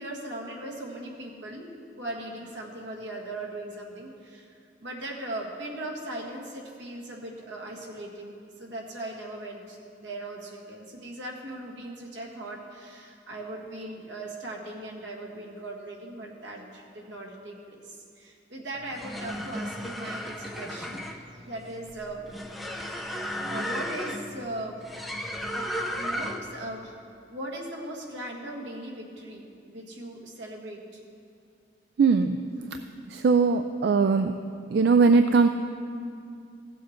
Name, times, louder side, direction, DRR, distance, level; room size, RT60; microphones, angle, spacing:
voice 1, 0.0-1.7 2.0-21.0 21.3-22.3 22.5-24.8 25.2-25.6 25.9-27.0 27.3-31.0, right 1 dB, 85° right, -1 dB, 1.7 m, -39 dB
sound 1, 18.8-26.6, equal, ahead, 0.5 m, -34 dB
voice 2, 32.0-32.4 32.7-32.8 33.1-34.3 34.7-35.5, right 4 dB, 65° right, 8 dB, 0.3 m, -20 dB
16.0 x 7.2 x 4.4 m, 2.4 s
head